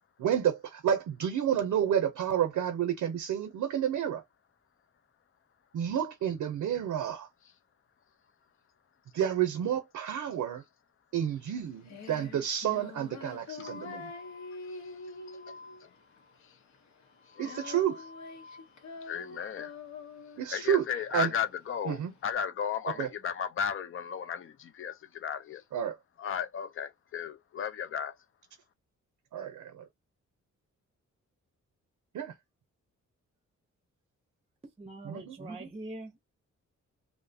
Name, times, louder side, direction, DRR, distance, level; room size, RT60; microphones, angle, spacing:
voice 1, 0.2-4.2 5.7-7.3 9.1-10.6 11.1-14.1 17.4-18.1 20.4-20.8 21.1-21.3 21.9-22.1 23.0-23.1 25.7-26.0 29.3-29.8 32.1-32.3 35.0-35.4, right 9 dB, 85° right, 0.6 m, -30 dB
Female singing, 11.3-22.3, left 4 dB, 70° left, 0.9 m, -46 dB
voice 2, 13.6-15.9 16.4-16.6 17.3-18.7 19.0-19.8 20.5-25.6 26.2-28.2, left 7 dB, 45° left, 0.5 m, -36 dB
voice 3, 34.8-36.2, right 2 dB, 20° right, 0.6 m, -42 dB
2.7 x 2.0 x 2.6 m
cardioid pair, 100°, 30 cm